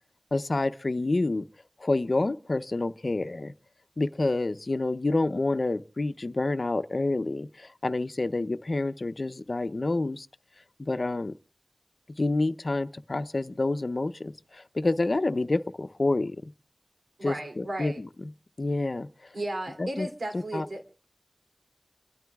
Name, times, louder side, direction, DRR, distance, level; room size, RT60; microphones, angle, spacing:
voice 1, 0.3-1.5 1.8-3.5 4.0-10.3 10.8-11.3 12.2-16.4 17.2-17.9 18.6-19.1 19.8-20.1 20.5-20.6, left 2 dB, 60° left, 0.6 m, -28 dB
voice 2, 17.2-18.0 19.3-20.8, right 1 dB, 85° right, 2.7 m, -34 dB
29.0 x 12.5 x 2.4 m
wide cardioid pair, 50°, 0 cm